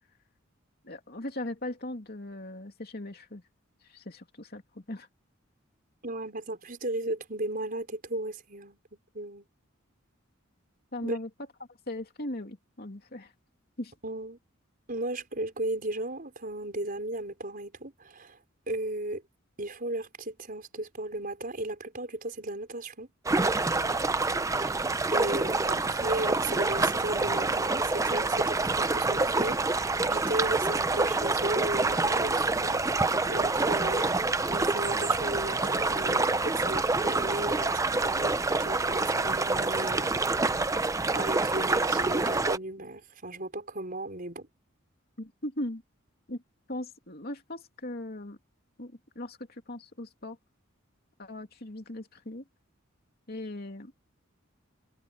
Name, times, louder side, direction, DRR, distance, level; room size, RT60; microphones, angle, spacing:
voice 1, 0.8-3.4 3.8-5.1 10.9-11.3 11.9-13.3 13.8-13.9 45.2-45.8 46.3-46.4 46.7-48.4 48.8-50.4 51.2-52.4 53.3-53.9, left 1 dB, 50° left, 2.9 m, -38 dB
voice 2, 6.0-9.5 11.0-11.2 14.0-14.4 14.9-18.4 18.7-19.2 19.6-23.1 25.1-34.1 34.5-40.1 41.1-44.5, right 1 dB, 45° right, 5.1 m, -35 dB
sound 1, 23.3-42.6, right 3 dB, 15° right, 0.6 m, -27 dB
head